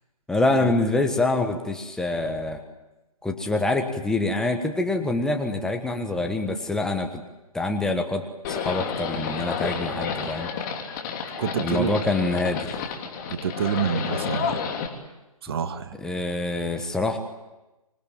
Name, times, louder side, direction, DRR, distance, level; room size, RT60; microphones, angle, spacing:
voice 1, 0.3-2.6 3.2-7.2 7.5-10.5 11.6-12.8 16.0-17.2, left 2 dB, 5° left, 4 dB, 1.3 m, -25 dB
Livestock farm animals working animals, 8.4-14.9, left 6 dB, 30° left, 3.3 m, -30 dB
voice 2, 11.4-12.0 13.3-14.6 15.4-16.0, right 7 dB, 40° right, 9 dB, 1.6 m, -27 dB
26.0 x 20.0 x 9.0 m, 1.0 s
figure-of-eight pair, 140°, 19 cm